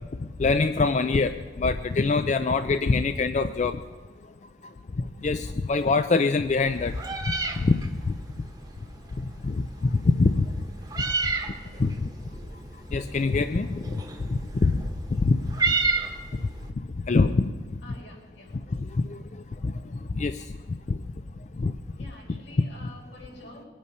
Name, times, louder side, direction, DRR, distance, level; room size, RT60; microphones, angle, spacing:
voice 1, 0.4-3.8 5.0-7.0 7.6-8.1 9.4-10.5 11.8-12.1 12.9-14.0 14.3-14.8 15.2-15.4 15.7-15.8 17.1-17.5 18.7-19.2 19.6-19.7 20.1-20.5 20.9-21.0 21.5-21.7 22.8-22.9, left 3 dB, 35° left, 9 dB, 0.3 m, -24 dB
Meow, 6.6-16.7, right 3 dB, 20° right, 1.1 m, -32 dB
voice 2, 11.3-11.9 17.8-18.5 22.0-23.7, left 1 dB, 80° left, -2 dB, 5.3 m, -48 dB
21.5 x 8.5 x 5.5 m, 1.4 s
head